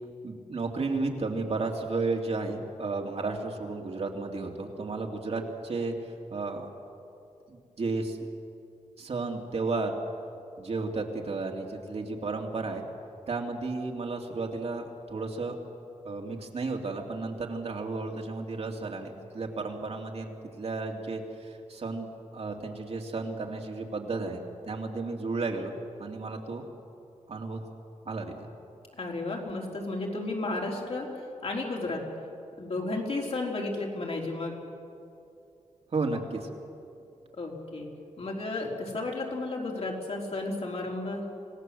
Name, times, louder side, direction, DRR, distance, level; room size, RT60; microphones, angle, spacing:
voice 1, 0.2-5.9 6.3-6.7 7.5-8.2 9.0-10.0 10.6-12.8 13.3-15.5 16.0-20.3 20.6-22.1 22.3-26.6 27.3-27.6 28.0-28.5 35.9-36.5, right 3 dB, 55° right, 1 dB, 2.7 m, -33 dB
voice 2, 29.0-31.1 31.4-32.0 32.6-34.5 37.3-37.9 38.2-41.2, left 2 dB, 55° left, -1 dB, 4.2 m, -33 dB
26.5 x 17.5 x 7.8 m, 2.6 s
wide cardioid pair, 105°, 13 cm